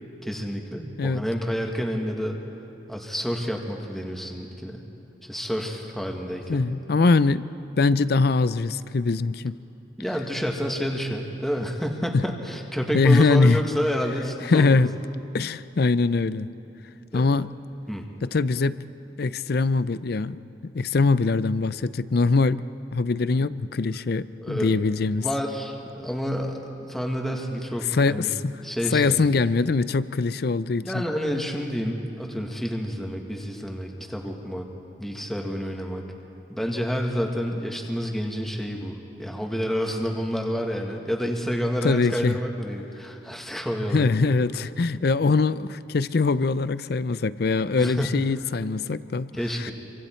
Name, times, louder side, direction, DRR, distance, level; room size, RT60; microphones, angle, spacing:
voice 1, 0.2-2.4 2.9-4.8 5.3-6.7 10.0-14.8 17.1-17.3 17.9-18.0 24.4-24.7 25.2-28.3 28.6-29.3 30.8-34.7 35.0-36.0 36.5-44.2 47.8-48.2 49.4-49.7, equal, ahead, 1 dB, 1.6 m, -29 dB
voice 2, 6.5-7.5 7.8-9.6 12.1-12.2 12.9-13.6 14.5-14.9 15.3-16.5 17.1-17.5 18.2-18.8 19.2-22.6 22.9-25.3 27.9-28.5 28.9-31.0 41.8-42.4 43.9-49.3 49.6-49.7, left 3 dB, 55° left, 15 dB, 0.5 m, -22 dB
27.0 x 24.5 x 4.5 m, 2.9 s
head